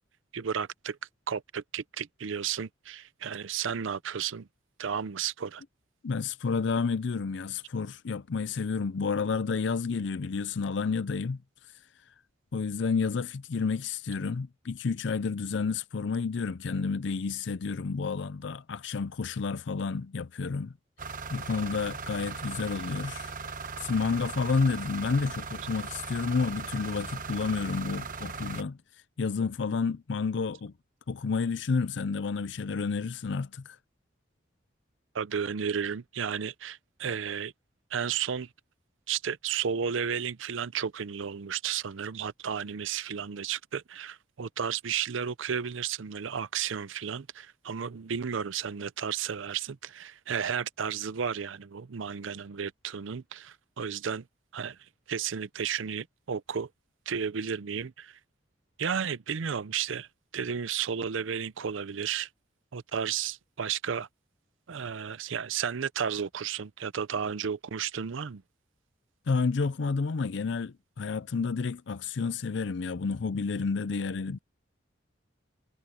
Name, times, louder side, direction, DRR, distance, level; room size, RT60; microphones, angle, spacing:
voice 1, 0.3-1.0 1.3-4.5 4.8-5.6 35.1-37.5 37.9-38.5 39.1-54.2 54.5-54.8 55.1-56.7 57.1-58.2 58.8-60.1 60.3-62.3 62.7-64.1 64.7-68.4, right 7 dB, 80° right, 0.6 m, -33 dB
voice 2, 6.0-11.4 12.5-20.7 21.3-23.3 23.8-28.8 29.2-30.7 31.1-33.8 69.3-74.4, left 4 dB, 65° left, 0.5 m, -30 dB
sound 1, 21.0-28.6, right 4 dB, 40° right, 1.1 m, -38 dB
head